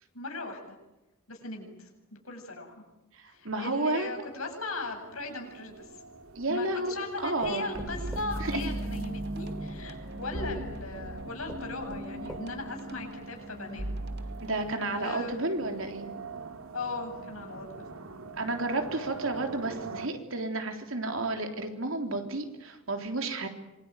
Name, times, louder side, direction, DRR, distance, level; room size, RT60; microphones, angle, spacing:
voice 1, 0.1-0.8 1.3-2.7 3.3-6.0 6.4-14.0 14.9-15.4 16.7-17.9, left 3 dB, 80° left, 3 dB, 7.9 m, -38 dB
voice 2, 3.1-4.1 6.4-7.7 8.4-8.6 14.4-16.1 18.4-23.5, right 2 dB, 70° right, 5 dB, 3.6 m, -31 dB
sound 1, 3.9-20.1, right 4 dB, 85° right, 2.1 m, -45 dB
sound 2, 5.7-6.6 7.4-9.4 10.4-10.5 11.0-11.1 11.5-12.8 13.3-13.4 13.7-13.8, equal, ahead, 2.8 m, -47 dB
sound 3, 7.7-14.6, right 1 dB, 50° right, 2.2 m, -37 dB
26.5 x 23.0 x 9.1 m, 0.98 s
head